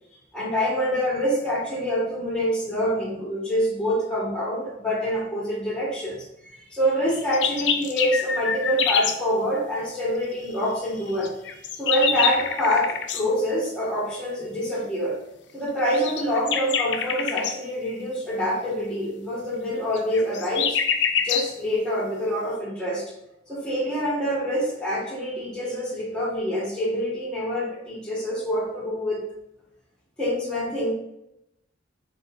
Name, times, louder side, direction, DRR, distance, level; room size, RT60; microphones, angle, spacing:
voice 1, 0.3-6.2 6.4-11.3 11.8-15.2 15.5-20.8 21.2-23.1 23.5-29.2 30.2-30.9, equal, 5° left, -7 dB, 1.5 m, -26 dB
sound 1, 7.1-9.2 11.2-13.2 15.9-17.6 19.9-21.5, left 7 dB, 65° left, 0.5 m, -25 dB
5.7 x 3.8 x 2.4 m, 0.85 s
head